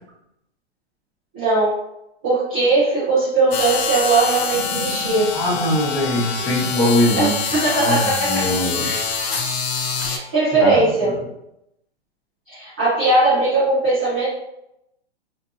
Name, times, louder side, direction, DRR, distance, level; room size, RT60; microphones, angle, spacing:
voice 1, 1.3-1.8 2.2-5.3 7.2-7.3 7.6-8.4 8.8-9.0 10.0-11.1 12.5-14.3, right 3 dB, 10° right, -12 dB, 0.3 m, -19 dB
sound 1, 3.5-10.2, left 6 dB, 70° left, 0.6 m, -25 dB
sound 2, 4.5-7.2, equal, 50° right, 1.0 m, -35 dB
voice 2, 5.3-7.3 7.8-9.0 10.6-11.2, left 1 dB, 15° left, -6 dB, 0.8 m, -21 dB
2.6 x 2.6 x 2.5 m, 0.81 s
hypercardioid pair, 155°, 33 cm